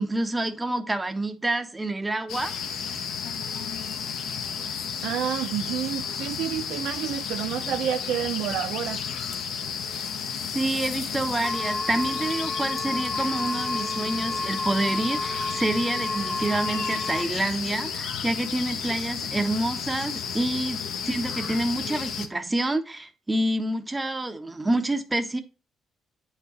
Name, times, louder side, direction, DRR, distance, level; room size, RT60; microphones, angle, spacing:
voice 1, 0.0-2.6 10.5-25.4, right 2 dB, 15° right, 1.2 m, -28 dB
sound 1, 2.3-22.3, left 7 dB, 75° left, 1.2 m, -32 dB
voice 2, 5.0-9.0, right 10 dB, 85° right, 0.6 m, -29 dB
sound 2, 11.4-17.2, left 2 dB, 15° left, 0.7 m, -32 dB
8.7 x 4.8 x 4.3 m
cardioid pair, 90°, 0 cm